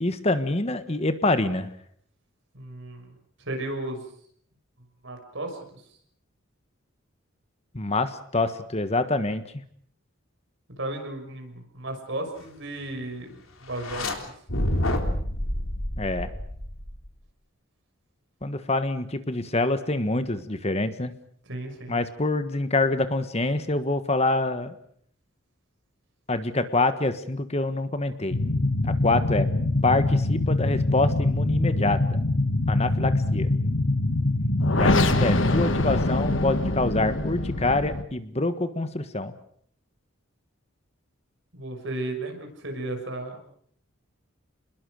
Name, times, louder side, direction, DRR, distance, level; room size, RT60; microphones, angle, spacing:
voice 1, 0.0-1.7 7.7-9.4 16.0-16.3 18.4-21.1 21.9-24.7 26.3-28.4 28.8-29.5 29.8-32.2 32.7-33.5 34.7-39.3, left 2 dB, 30° left, 11 dB, 1.4 m, -26 dB
voice 2, 2.5-3.1 3.4-4.0 5.0-5.8 10.8-14.3 21.5-22.0 41.5-43.4, right 2 dB, 60° right, 4 dB, 6.3 m, -34 dB
sound 1, 13.7-14.1 14.5-17.1, left 1 dB, 85° left, 4.0 m, -28 dB
sound 2, 28.3-38.0, left 2 dB, 65° left, 1.8 m, -24 dB
28.5 x 21.0 x 6.5 m, 0.64 s
head